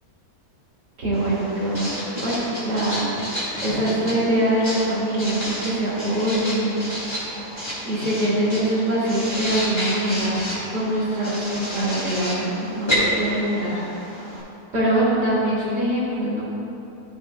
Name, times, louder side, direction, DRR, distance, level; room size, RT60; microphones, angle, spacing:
voice 1, 1.0-3.1 3.6-6.8 7.8-10.5 10.7-13.8 14.7-16.4, right 1 dB, 85° right, -8 dB, 2.6 m, -23 dB
Writing, 1.1-14.4, equal, 15° left, 1.7 m, -30 dB
12.5 x 5.8 x 2.3 m, 2.8 s
omnidirectional pair, 1.7 m